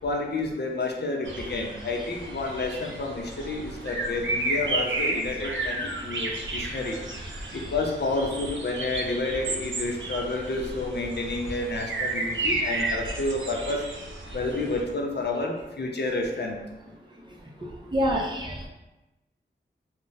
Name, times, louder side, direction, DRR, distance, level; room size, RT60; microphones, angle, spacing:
voice 1, 0.0-7.0 7.5-13.8 14.3-16.6, left 2 dB, 55° left, 1 dB, 0.6 m, -30 dB
sound 1, 1.3-14.8, right 2 dB, 70° right, 0.6 m, -32 dB
voice 2, 17.6-18.7, equal, 25° right, -3 dB, 0.5 m, -29 dB
2.4 x 2.1 x 3.8 m, 1.0 s
cardioid pair, 45°, 20 cm